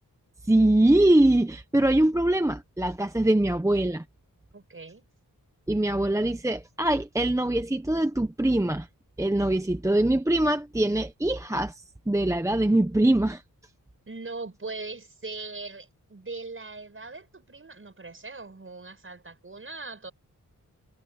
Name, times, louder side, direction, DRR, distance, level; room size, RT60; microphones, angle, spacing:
voice 1, 0.5-4.0 5.7-8.9 9.2-13.4, right 1 dB, 10° right, 1.0 m, -23 dB
voice 2, 4.5-5.1 14.1-20.1, right 3 dB, 35° right, 6.6 m, -40 dB
wide cardioid pair, 105°, 34 cm